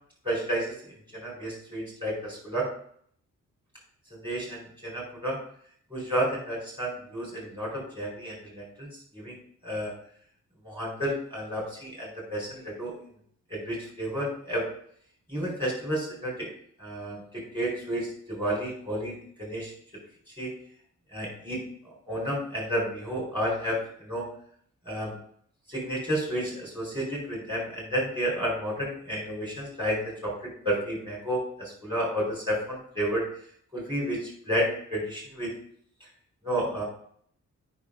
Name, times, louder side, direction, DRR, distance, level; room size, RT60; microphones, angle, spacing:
voice 1, 0.2-0.7 1.1-2.7 4.1-5.4 5.9-8.9 9.1-9.4 9.6-9.9 10.6-12.9 13.5-14.6 15.3-16.5 16.8-19.7 20.4-20.5 21.1-24.3 24.9-25.1 25.7-30.3 30.6-33.2 33.7-35.5 36.4-36.8, equal, 15° right, -4 dB, 4.2 m, -31 dB
8.3 x 5.4 x 5.0 m, 0.62 s
cardioid pair, 85°, 30 cm